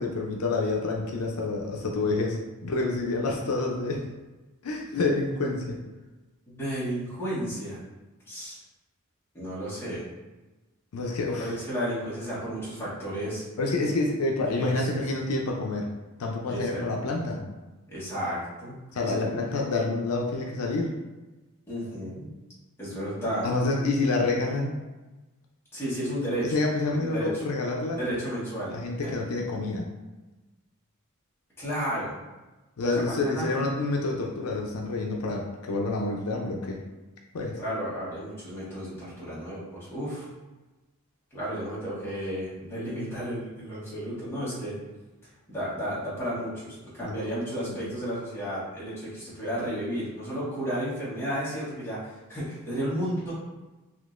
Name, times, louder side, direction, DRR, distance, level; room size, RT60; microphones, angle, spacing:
voice 1, 0.0-4.0 4.6-5.8 10.9-11.5 13.6-15.9 16.2-17.5 18.9-21.0 23.4-24.8 26.4-28.0 28.7-29.9 32.8-36.8 37.3-37.6 47.0-47.2 47.6-47.8, left 3 dB, 85° left, 0 dB, 0.5 m, -28 dB
voice 2, 6.5-7.8 8.3-8.6 9.3-10.0 11.4-13.4 14.4-14.9 16.5-16.8 17.9-18.8 19.1-19.3 21.7-22.3 22.8-23.5 25.7-26.5 27.0-27.4 27.9-28.7 29.0-29.2 31.6-32.1 32.8-33.7 37.6-40.3 41.3-44.7 45.5-53.4, equal, 10° left, -11 dB, 1.5 m, -32 dB
3.6 x 2.8 x 2.5 m, 1.1 s
head